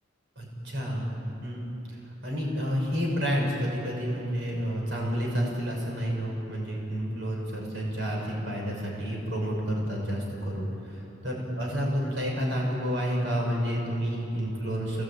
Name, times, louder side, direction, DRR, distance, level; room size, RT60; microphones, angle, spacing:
voice 1, 0.4-1.1 1.4-2.0 2.2-10.7 11.2-15.0, equal, 65° right, -1 dB, 6.3 m, -30 dB
29.0 x 19.5 x 9.0 m, 2.9 s
head